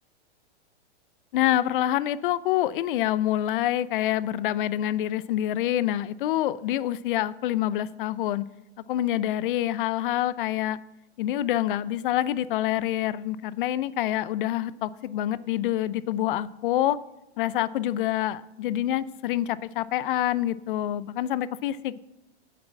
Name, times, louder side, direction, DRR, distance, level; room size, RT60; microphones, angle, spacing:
voice 1, 1.3-8.4 8.9-10.8 11.2-17.0 17.4-22.0, left 12 dB, 50° left, 18 dB, 0.6 m, -26 dB
8.4 x 7.5 x 7.1 m, 0.93 s
hypercardioid pair, 115°, 33 cm